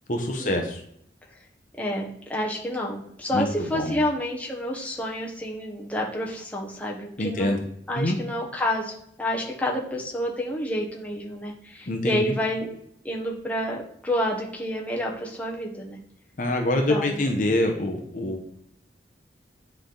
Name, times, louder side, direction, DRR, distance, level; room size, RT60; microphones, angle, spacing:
voice 1, 0.1-0.8 3.3-3.9 7.2-7.6 7.9-8.2 11.9-12.3 16.4-18.4, left 1 dB, 50° left, 3 dB, 0.8 m, -25 dB
voice 2, 1.8-7.6 7.9-12.7 13.0-16.0 16.9-17.2, left 1 dB, 10° left, -2 dB, 1.1 m, -29 dB
9.4 x 3.4 x 3.9 m, 0.71 s
head